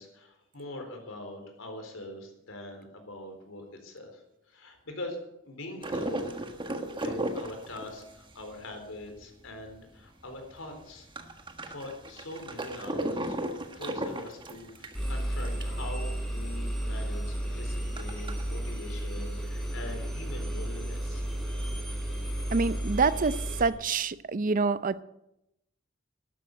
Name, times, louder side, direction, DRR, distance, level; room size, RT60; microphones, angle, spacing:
voice 1, 0.0-4.2 4.5-5.2 5.4-6.4 6.9-11.3 11.6-13.4 13.7-21.3, left 1 dB, 80° left, 4 dB, 4.0 m, -43 dB
sound 1, 5.8-9.8 10.2-10.3 10.5-15.8 16.2-16.3 16.5-16.6 17.1-18.4, right 1 dB, 25° right, 1.5 m, -35 dB
Engine, 14.9-23.7, right 1 dB, ahead, 4.6 m, -33 dB
voice 2, 22.5-25.0, right 4 dB, 40° right, 16 dB, 0.6 m, -27 dB
13.0 x 12.0 x 7.9 m, 0.84 s
head